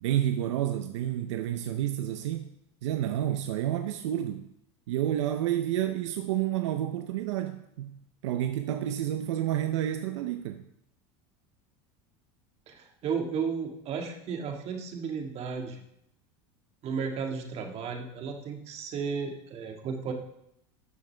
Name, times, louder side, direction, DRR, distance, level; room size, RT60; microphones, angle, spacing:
voice 1, 0.0-2.5 2.8-4.4 4.9-7.9 8.2-10.6, right 11 dB, 85° right, 7 dB, 0.6 m, -30 dB
voice 2, 12.7-15.8 16.8-20.1, right 6 dB, 45° right, 3 dB, 1.7 m, -34 dB
13.0 x 6.6 x 3.4 m, 0.79 s
supercardioid pair, 110°, 15 cm